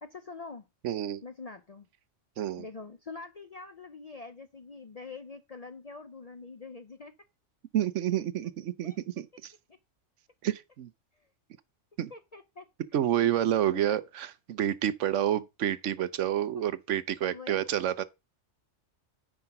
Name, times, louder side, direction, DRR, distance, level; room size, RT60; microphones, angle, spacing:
voice 1, 0.0-0.7 1.2-1.9 2.6-7.1 8.8-9.0 9.7-9.8 12.1-12.7 13.7-14.0 17.2-17.5, left 4 dB, 45° left, 0.5 m, -45 dB
voice 2, 0.8-1.2 2.4-2.6 7.7-9.5 10.4-10.9 12.0-12.1 12.9-18.0, right 11 dB, 75° right, 1.0 m, -29 dB
9.5 x 3.6 x 5.8 m
omnidirectional pair, 1.3 m